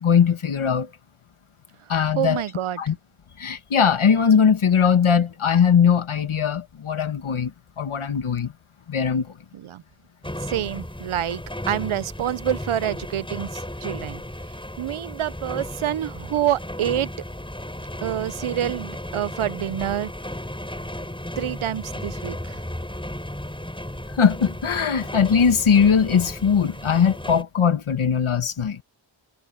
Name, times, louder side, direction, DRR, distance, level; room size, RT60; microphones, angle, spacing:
voice 1, 0.0-0.9 1.9-2.4 2.8-2.9 3.4-7.5 7.8-8.5 8.9-9.3 24.1-28.8, left 7 dB, 85° left, 1.6 m, -20 dB
voice 2, 2.2-2.8 9.5-9.8 10.4-11.4 11.7-14.2 14.8-17.1 18.0-20.1 21.4-22.6, right 11 dB, 90° right, 0.7 m, -27 dB
sound 1, 10.2-27.4, left 1 dB, 10° left, 6.4 m, -34 dB
wide cardioid pair, 55°, 48 cm